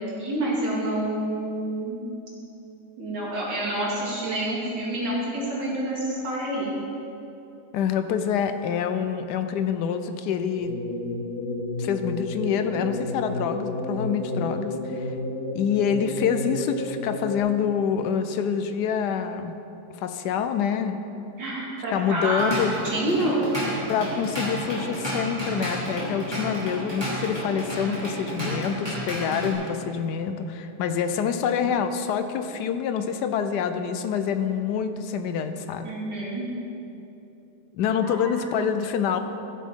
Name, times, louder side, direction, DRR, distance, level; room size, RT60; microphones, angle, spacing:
voice 1, 0.0-2.0 3.0-6.7 21.4-23.5 35.8-36.5 38.0-38.5, right 1 dB, 85° right, -6 dB, 2.9 m, -28 dB
voice 2, 7.7-10.7 11.8-15.1 15.5-19.5 20.0-21.0 21.9-22.7 23.9-35.9 37.7-39.2, left 7 dB, 75° left, 9 dB, 1.2 m, -26 dB
sound 1, 10.6-17.4, left 1 dB, 55° left, 2.4 m, -31 dB
Drum kit / Drum, 22.2-29.5, equal, 15° right, 2.5 m, -31 dB
14.5 x 7.4 x 3.6 m, 2.9 s
omnidirectional pair, 1.9 m